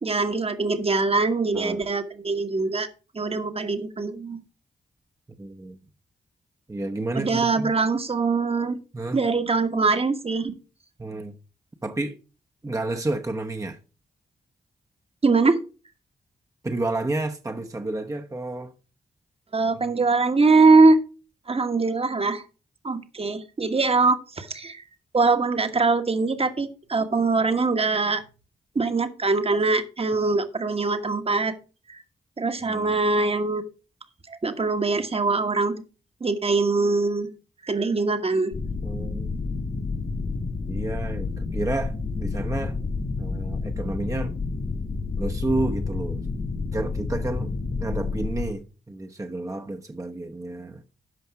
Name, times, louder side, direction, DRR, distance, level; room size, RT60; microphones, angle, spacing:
voice 1, 0.0-2.9 3.1-4.4 7.1-8.8 9.1-10.5 15.2-15.6 19.5-21.0 21.5-22.4 22.8-24.8 25.1-28.2 28.7-31.5 31.9-32.0 32.4-33.6 34.3-35.7 36.2-37.3 37.6-38.5, right 3 dB, 35° right, 1.3 m, -22 dB
voice 2, 5.4-5.8 6.7-7.7 8.9-9.2 11.0-11.4 11.8-12.1 12.6-13.8 16.6-18.7 19.7-20.0 32.6-32.9 38.8-39.3 40.7-42.8 43.2-44.3 45.2-46.2 46.7-47.5 47.8-50.8, right 2 dB, 20° right, 0.9 m, -30 dB
sound 1, 38.5-48.5, left 4 dB, 60° left, 1.8 m, -29 dB
12.5 x 5.2 x 4.7 m
cardioid pair, 65°, 17 cm